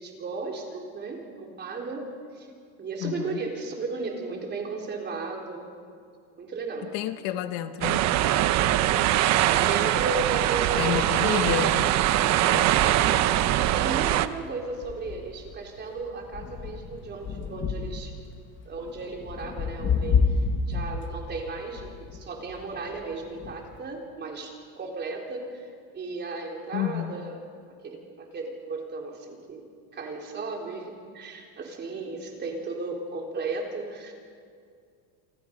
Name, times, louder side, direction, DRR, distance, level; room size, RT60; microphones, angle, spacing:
voice 1, 0.0-2.1 2.3-2.5 2.8-5.7 6.3-7.0 9.5-11.7 12.9-13.4 13.7-18.1 18.7-20.4 20.7-25.7 25.9-27.4 27.8-29.7 29.9-34.1, right 4 dB, 25° right, 0 dB, 3.9 m, -35 dB
voice 2, 3.0-3.4 6.9-8.0 10.8-11.9 12.5-12.8 26.7-27.1, left 11 dB, 55° left, 10 dB, 1.2 m, -30 dB
sound 1, 7.8-14.3, right 13 dB, 40° right, 0.9 m, -22 dB
sound 2, 14.1-14.2 14.6-23.8, left 5 dB, 25° left, 1.4 m, -30 dB
28.5 x 24.5 x 5.3 m, 2.3 s
cardioid pair, 160°, 42 cm